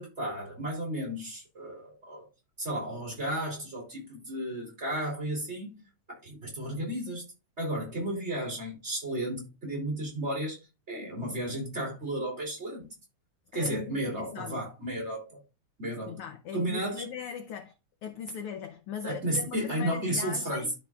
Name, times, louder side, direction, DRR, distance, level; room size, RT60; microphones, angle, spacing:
voice 1, 0.0-2.3 2.6-5.8 6.1-7.2 7.6-10.6 10.9-12.9 13.5-15.4 15.8-16.2 16.5-17.1 19.0-20.7, right 1 dB, 20° right, 3.2 m, -33 dB
voice 2, 13.5-14.7 16.1-17.7 18.0-20.7, left 8 dB, 75° left, 1.3 m, -39 dB
13.0 x 4.5 x 2.4 m
omnidirectional pair, 3.3 m